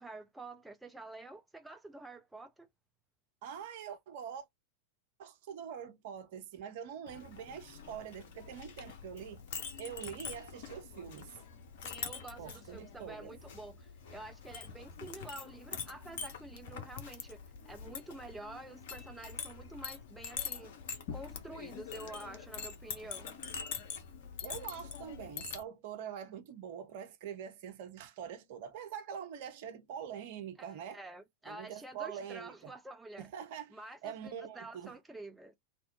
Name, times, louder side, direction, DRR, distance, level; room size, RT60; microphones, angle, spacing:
voice 1, 0.0-2.7 11.8-20.8 21.1-23.4 30.6-33.3 33.7-35.6, right 2 dB, 5° right, 0.4 m, -49 dB
voice 2, 3.4-4.5 5.2-11.4 12.4-13.3 24.4-31.0 31.5-32.7 33.2-34.9, right 8 dB, 50° right, 0.7 m, -44 dB
Chink clink, 7.1-25.6, left 6 dB, 50° left, 0.7 m, -44 dB
2.9 x 2.1 x 2.7 m
figure-of-eight pair, 90°, 0 cm